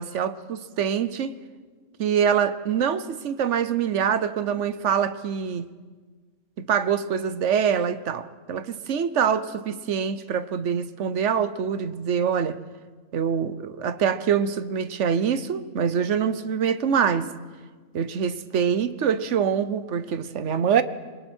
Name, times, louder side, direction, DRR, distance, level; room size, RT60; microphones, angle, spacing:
voice 1, 0.0-1.4 2.0-5.7 6.7-12.6 13.1-17.3 17.9-20.8, right 7 dB, 65° right, 1.2 m, -25 dB
26.5 x 24.0 x 4.5 m
omnidirectional pair, 1.3 m